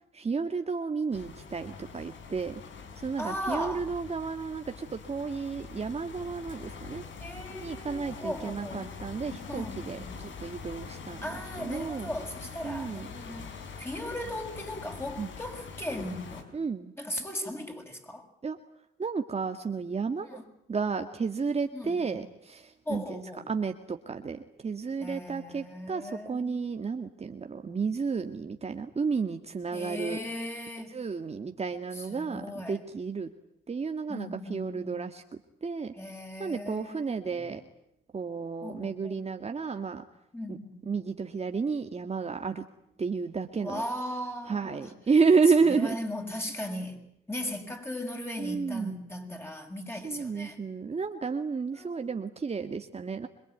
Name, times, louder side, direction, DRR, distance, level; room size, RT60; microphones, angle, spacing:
voice 1, 0.1-2.6 3.0-7.0 7.6-11.2 11.6-12.1 12.6-13.1 15.2-15.3 16.5-16.9 18.4-18.6 19.0-20.3 20.7-23.2 23.5-30.2 30.9-33.3 33.7-35.2 35.6-35.9 36.4-37.6 38.1-40.0 40.5-40.6 40.9-42.6 43.0-43.8 44.5-46.0 48.4-49.0 50.0-53.3, right 5 dB, 30° right, 6 dB, 1.9 m, -31 dB
sound 1, 1.1-16.4, left 5 dB, 70° left, 5.3 m, -44 dB
voice 2, 3.2-3.9 7.2-8.9 9.5-10.3 11.2-16.5 17.0-18.3 20.2-20.4 21.7-22.2 22.9-23.5 25.0-26.6 29.7-30.9 31.9-32.8 34.1-35.1 35.9-37.6 38.6-39.2 40.3-40.9 43.6-44.9 45.7-47.0 47.3-50.6 51.7-52.1, left 1 dB, 10° left, 4 dB, 7.4 m, -38 dB
26.5 x 23.0 x 9.3 m, 0.77 s
cardioid pair, 90°, 20 cm